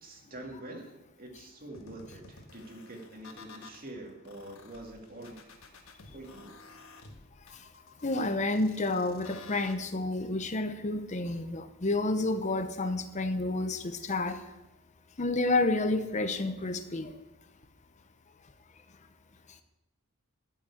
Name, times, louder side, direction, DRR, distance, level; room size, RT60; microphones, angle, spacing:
voice 1, 0.0-5.4 6.1-6.5, right 1 dB, 40° right, 1 dB, 2.4 m, -45 dB
sound 1, 1.7-3.8 4.2-9.7, left 4 dB, 70° left, 1.5 m, -52 dB
voice 2, 8.0-13.8 14.1-14.4 15.2-17.1, left 2 dB, 35° left, 8 dB, 0.8 m, -29 dB
12.5 x 6.2 x 8.5 m, 0.96 s
head